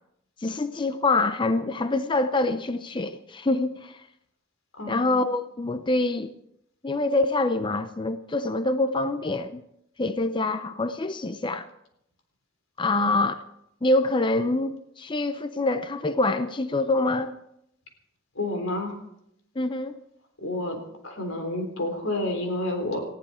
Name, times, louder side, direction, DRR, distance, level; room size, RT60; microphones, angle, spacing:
voice 1, 0.4-4.0 4.9-6.3 6.8-9.6 10.0-11.7 12.8-13.4 13.8-17.4 19.6-20.0, left 2 dB, 25° left, 10 dB, 0.5 m, -25 dB
voice 2, 4.8-5.2 12.9-13.1 18.4-19.0 20.4-20.8 21.0-23.0, left 1 dB, 85° left, 4 dB, 3.7 m, -29 dB
19.5 x 14.5 x 4.3 m, 0.78 s
head